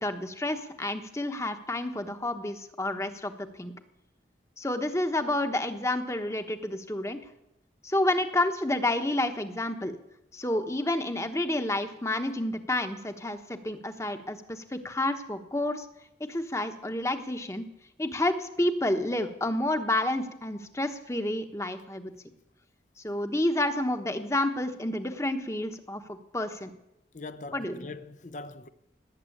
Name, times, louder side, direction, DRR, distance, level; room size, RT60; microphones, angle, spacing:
voice 1, 0.0-3.7 4.6-7.2 7.8-10.0 10.3-15.9 16.2-17.7 18.0-22.1 23.0-26.7 27.5-27.9, left 1 dB, 15° left, 1.1 m, -30 dB
voice 2, 27.1-28.7, left 3 dB, 45° left, 0.7 m, -41 dB
18.5 x 7.7 x 9.9 m
head